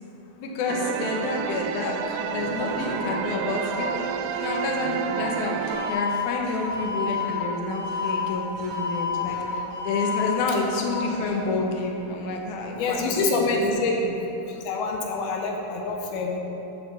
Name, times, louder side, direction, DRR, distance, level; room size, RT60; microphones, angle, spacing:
voice 1, 0.4-4.1 4.4-13.1 13.4-13.6, left 3 dB, 65° left, 0 dB, 2.1 m, -29 dB
sound 1, 0.7-5.9, right 8 dB, 90° right, 1.9 m, -30 dB
sound 2, 1.8-2.0 2.3-12.8 13.3-13.6, left 1 dB, 50° right, 3.4 m, -36 dB
Alarm, 5.7-6.2 6.7-7.2 7.7-8.2 8.7-9.2 9.7-10.2, left 6 dB, 70° right, 2.9 m, -30 dB
voice 2, 12.8-14.2 14.6-16.4, left 3 dB, 85° left, 1 dB, 2.7 m, -26 dB
10.0 x 5.0 x 7.1 m, 3.0 s
omnidirectional pair, 4.4 m